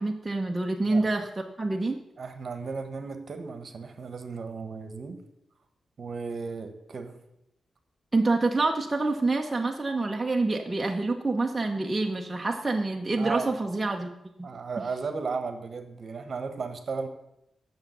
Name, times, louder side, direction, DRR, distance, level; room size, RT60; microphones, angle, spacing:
voice 1, 0.0-2.0 8.1-14.1 14.4-14.5, right 3 dB, 15° right, 1 dB, 0.8 m, -27 dB
voice 2, 2.2-5.2 6.0-7.1 13.2-13.5 14.4-17.1, right 4 dB, 50° right, 8 dB, 1.3 m, -35 dB
8.7 x 7.1 x 7.9 m, 0.83 s
wide cardioid pair, 135°, 0 cm